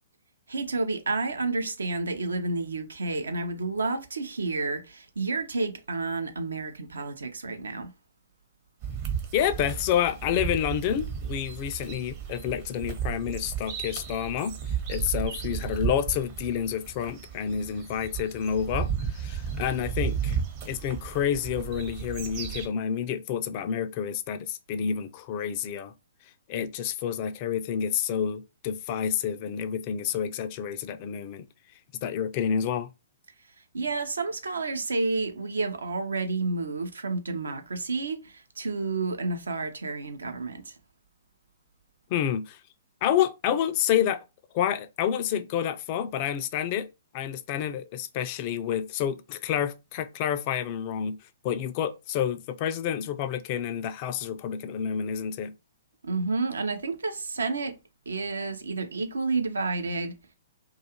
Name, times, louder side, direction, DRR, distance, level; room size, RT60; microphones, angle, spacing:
voice 1, 0.5-7.9 33.7-40.7 56.0-57.8 58.1-60.2, right 3 dB, 75° right, 0.5 m, -30 dB
sound 1, 8.8-22.7, right 7 dB, 35° right, 0.7 m, -34 dB
voice 2, 9.3-14.6 14.9-20.4 20.7-25.9 26.5-31.5 32.0-32.9 42.1-42.6 43.0-44.2 44.5-46.9 47.1-51.2 51.4-55.5, left 9 dB, 40° left, 0.3 m, -29 dB
2.4 x 2.3 x 2.8 m
figure-of-eight pair, 120°, 0 cm